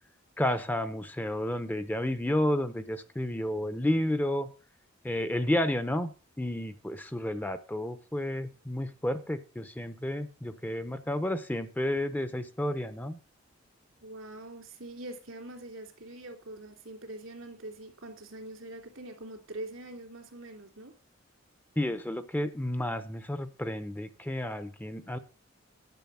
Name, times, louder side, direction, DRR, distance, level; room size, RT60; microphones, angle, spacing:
voice 1, 0.4-4.5 5.0-13.2 21.8-25.2, left 1 dB, 10° left, 11 dB, 0.6 m, -31 dB
voice 2, 14.0-21.0, right 1 dB, 85° right, 3 dB, 3.0 m, -44 dB
10.5 x 6.7 x 5.5 m, 0.36 s
head